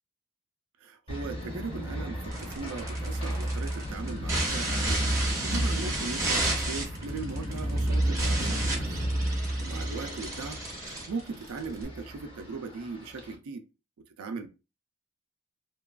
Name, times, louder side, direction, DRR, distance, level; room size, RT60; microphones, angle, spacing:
voice 1, 0.8-5.1 5.4-9.0 9.6-13.7 14.0-14.5, right 4 dB, 80° right, 0.4 m, -39 dB
sound 1, 1.1-13.3, right 1 dB, 25° left, 0.6 m, -32 dB
sound 2, 2.3-11.8, right 2 dB, 15° right, 0.7 m, -33 dB
2.8 x 2.2 x 2.3 m
head